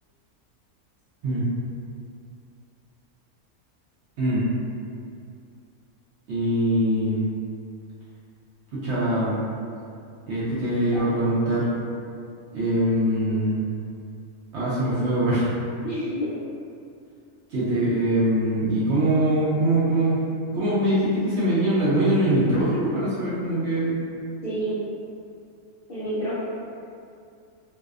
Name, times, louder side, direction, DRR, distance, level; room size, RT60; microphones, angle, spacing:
voice 1, 6.3-7.2 8.7-9.4 10.3-11.7 12.5-13.6 14.5-15.5 17.5-20.2 20.5-24.0, right 1 dB, 65° right, -10 dB, 0.7 m, -23 dB
voice 2, 15.8-16.3 24.4-24.8 25.9-26.4, equal, 65° left, -12 dB, 0.5 m, -28 dB
2.6 x 2.1 x 2.3 m, 2.4 s
omnidirectional pair, 1.5 m